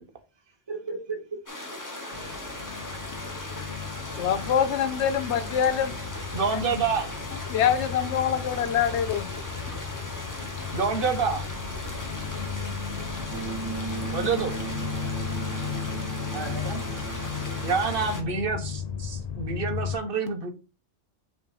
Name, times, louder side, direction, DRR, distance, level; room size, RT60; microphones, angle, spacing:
voice 1, 0.7-1.4 1.7-1.8 2.2-2.3 10.2-10.8 11.7-13.1 16.3-16.8, right 4 dB, 20° right, 1.1 m, -39 dB
sound 1, 1.5-18.2, left 1 dB, 15° left, 1.0 m, -38 dB
sound 2, 2.1-20.0, left 7 dB, 55° left, 0.4 m, -35 dB
voice 2, 4.2-5.9 7.5-9.3, left 8 dB, 70° left, 1.0 m, -24 dB
voice 3, 6.3-7.1 10.7-11.5 14.1-14.6 17.6-20.5, right 5 dB, 50° right, 1.2 m, -27 dB
sound 3, 13.3-18.4, right 5 dB, 75° right, 1.6 m, -37 dB
5.7 x 3.4 x 4.9 m
omnidirectional pair, 1.2 m